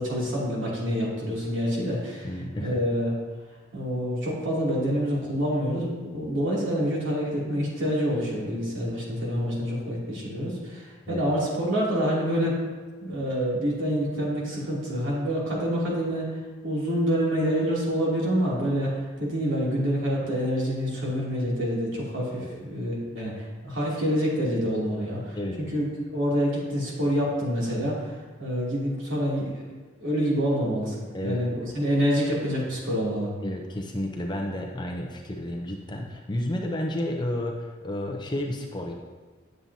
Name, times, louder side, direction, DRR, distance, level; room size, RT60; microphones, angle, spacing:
voice 1, 0.0-2.3 2.6-3.1 3.7-12.6 13.0-28.1 28.4-29.7 30.0-33.3, equal, 70° right, -5 dB, 2.8 m, -27 dB
voice 2, 2.2-2.7 11.1-11.2 22.4-22.6 25.4-25.6 31.1-31.4 33.4-38.9, left 1 dB, 20° left, 1 dB, 0.6 m, -31 dB
10.5 x 7.3 x 2.8 m, 1.3 s
head